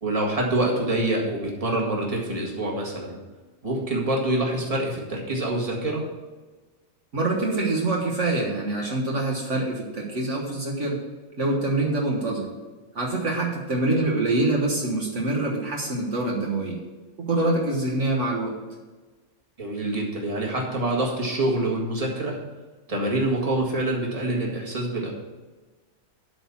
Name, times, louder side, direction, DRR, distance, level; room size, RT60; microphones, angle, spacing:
voice 1, 0.0-3.2 3.6-6.0 19.6-22.4 22.9-25.1, right 1 dB, 25° right, -2 dB, 1.9 m, -26 dB
voice 2, 7.1-11.0 11.4-12.5 12.9-16.8 17.2-18.5, right 2 dB, 60° right, -2 dB, 1.7 m, -25 dB
12.0 x 4.3 x 7.2 m, 1.3 s
omnidirectional pair, 1.4 m